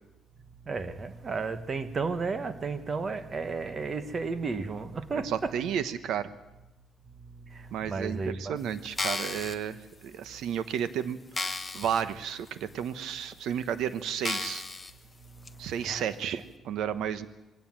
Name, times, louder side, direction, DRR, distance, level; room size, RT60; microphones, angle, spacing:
voice 1, 0.6-5.5 7.5-8.6 15.5-16.0, right 4 dB, 30° right, 1.3 m, -33 dB
voice 2, 5.2-6.3 7.7-11.2 11.7-14.6 15.6-17.3, right 9 dB, 75° right, 1.1 m, -32 dB
sound 1, 8.8-9.5 10.2-10.3 10.8-10.9 11.3-12.0 12.5-12.6 13.3-13.4 14.2-14.9 15.5-15.6, left 3 dB, 15° left, 1.1 m, -33 dB
21.5 x 17.0 x 7.6 m
cardioid pair, 155°, 0 cm